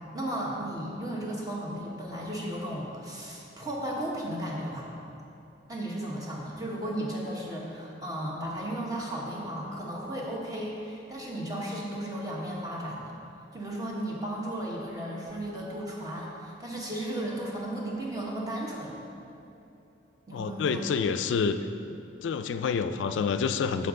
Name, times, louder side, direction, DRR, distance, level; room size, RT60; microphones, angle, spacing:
voice 1, 0.1-4.9 5.7-13.1 13.5-19.0 20.3-20.8, right 1 dB, 20° right, -4 dB, 1.1 m, -35 dB
voice 2, 20.3-21.6 22.2-23.9, left 5 dB, 90° left, 10 dB, 0.3 m, -28 dB
7.3 x 6.6 x 3.7 m, 2.9 s
head